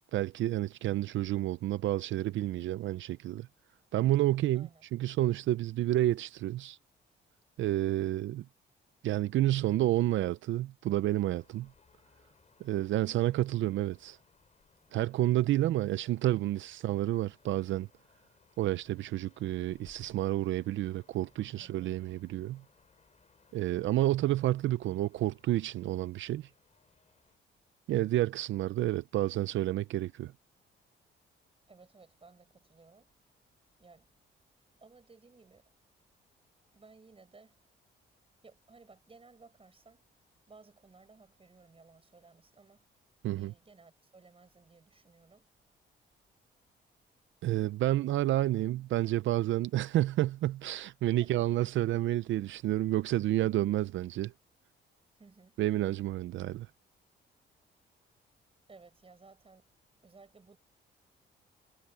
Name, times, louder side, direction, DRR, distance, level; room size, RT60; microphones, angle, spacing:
voice 1, 0.1-3.5 3.9-6.8 7.6-8.5 9.0-11.7 12.6-14.2 14.9-17.9 18.6-22.6 23.5-26.5 27.9-30.3 43.2-43.5 47.4-54.3 55.6-56.7, right 14 dB, 75° right, 0.6 m, -30 dB
voice 2, 4.5-4.9 21.6-22.0 31.7-33.1 33.8-34.1 34.8-35.7 36.7-37.6 38.4-40.1 40.5-42.9 43.3-45.5 51.0-51.7 55.2-55.6 58.7-59.7 60.0-60.6, right 4 dB, 30° right, 7.0 m, -58 dB
sound 1, 11.2-27.4, left 5 dB, 35° left, 5.4 m, -66 dB
cardioid pair, 90°, 20 cm